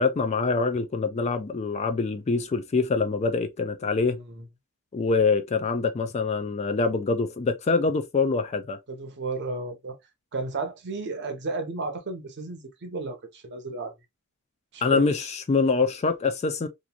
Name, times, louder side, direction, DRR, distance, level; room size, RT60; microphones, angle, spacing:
voice 1, 0.0-4.2 4.9-8.8 14.8-16.7, left 4 dB, 30° left, 0.3 m, -25 dB
voice 2, 4.1-4.4 8.9-10.0 10.3-13.9 14.7-15.1, right 3 dB, 55° right, 0.7 m, -33 dB
2.9 x 2.5 x 2.2 m
head